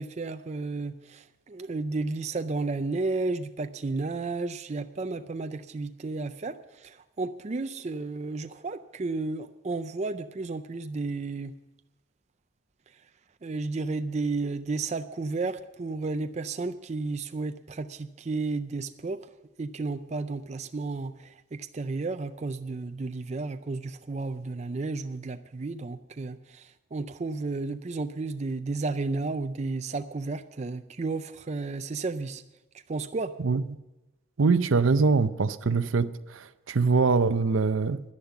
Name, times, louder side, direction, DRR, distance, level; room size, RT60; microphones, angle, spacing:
voice 1, 0.0-11.5 13.4-19.2 19.6-32.4 32.9-33.3, right 3 dB, 35° right, 0.4 m, -32 dB
voice 2, 34.4-38.0, right 4 dB, 75° right, 0.6 m, -23 dB
11.0 x 10.5 x 7.0 m
head